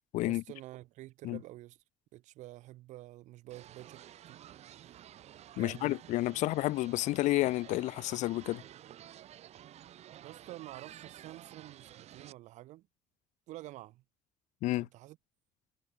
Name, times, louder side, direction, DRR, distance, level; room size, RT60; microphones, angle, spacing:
voice 1, 0.3-1.8 2.1-4.4 5.6-6.0 10.2-12.9 13.5-14.0 14.8-15.2, right 16 dB, 80° right, 5.8 m, -49 dB
sound 1, 3.5-12.3, right 11 dB, 60° right, 5.8 m, -52 dB
voice 2, 5.6-8.6 14.6-14.9, left 18 dB, 85° left, 1.3 m, -30 dB
cardioid pair, 110°, 12 cm